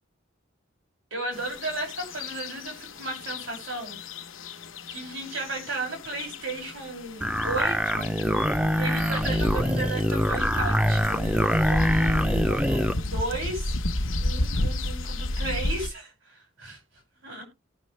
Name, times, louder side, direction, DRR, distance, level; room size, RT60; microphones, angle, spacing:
voice 1, 1.1-4.0 4.4-4.5 4.9-8.1 8.8-13.8 14.2-16.8 17.2-17.4, right 2 dB, 75° right, 1 dB, 5.7 m, -34 dB
sound 1, 1.3-15.9, left 1 dB, 80° left, 1.0 m, -32 dB
sound 2, 7.2-13.0, equal, 5° right, 0.6 m, -24 dB
18.0 x 6.2 x 3.2 m, 0.27 s
head